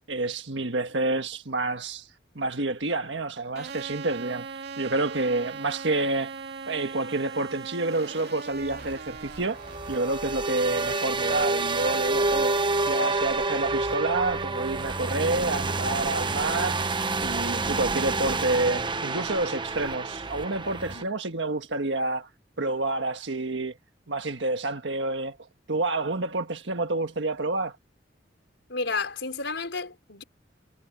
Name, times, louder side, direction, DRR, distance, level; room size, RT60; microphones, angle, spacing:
voice 1, 0.1-2.1 2.3-4.5 4.8-6.3 6.7-9.6 9.9-12.6 12.9-16.8 17.2-22.3 22.6-23.7 24.1-25.4 25.7-27.8, right 2 dB, 80° right, 1.5 m, -28 dB
sound 1, 3.6-13.7, right 5 dB, 60° right, 2.7 m, -41 dB
sound 2, 8.6-21.0, right 3 dB, 25° right, 1.0 m, -28 dB
voice 2, 28.7-30.2, left 4 dB, 75° left, 5.3 m, -31 dB
head